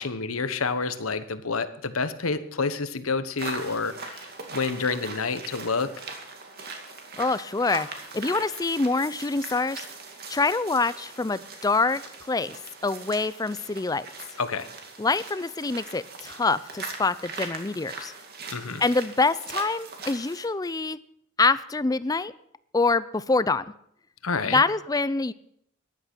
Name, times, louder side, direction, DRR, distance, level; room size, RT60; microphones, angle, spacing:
voice 1, 0.0-5.9 14.4-14.7 18.5-18.8 24.2-24.6, left 4 dB, 85° left, 12 dB, 1.1 m, -29 dB
sound 1, 3.4-20.5, right 4 dB, 50° right, 2.3 m, -40 dB
voice 2, 7.2-7.9 8.1-9.8 10.3-12.0 12.3-14.1 15.0-18.1 18.8-21.0 21.4-22.3 22.7-23.6 24.5-25.3, left 3 dB, 20° left, 16 dB, 0.4 m, -25 dB
15.5 x 11.0 x 6.1 m, 0.71 s
head